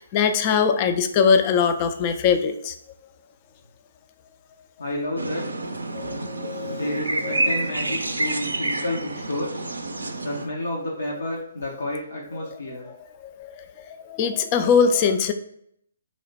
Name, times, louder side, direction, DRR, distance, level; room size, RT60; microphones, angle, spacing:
voice 1, 0.0-2.7 5.9-6.8 7.3-7.4 13.2-15.3, left 6 dB, 30° left, 8 dB, 0.3 m, -22 dB
voice 2, 4.8-5.5 6.7-9.6 10.2-12.9, left 1 dB, 70° left, -3 dB, 0.7 m, -30 dB
sound 1, 5.2-10.5, right 2 dB, 75° right, 0.4 m, -28 dB
3.0 x 2.1 x 4.0 m, 0.70 s
figure-of-eight pair, 135°, 0 cm